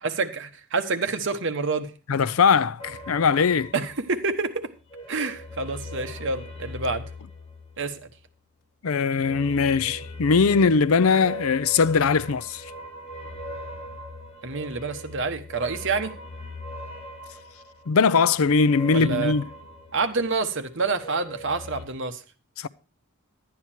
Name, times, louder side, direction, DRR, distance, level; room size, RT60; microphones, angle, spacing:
voice 1, 0.0-1.9 3.7-4.6 5.1-7.0 7.8-8.0 14.4-16.2 18.9-19.3 19.9-22.2, right 4 dB, 60° right, 1.1 m, -27 dB
voice 2, 2.1-3.7 8.8-12.6 17.9-19.4 22.6-22.7, left 5 dB, 75° left, 0.5 m, -21 dB
sound 1, 2.8-4.4 4.7-8.3 9.1-20.5 20.8-21.8, left 1 dB, 30° left, 1.8 m, -41 dB
11.5 x 9.6 x 4.4 m
head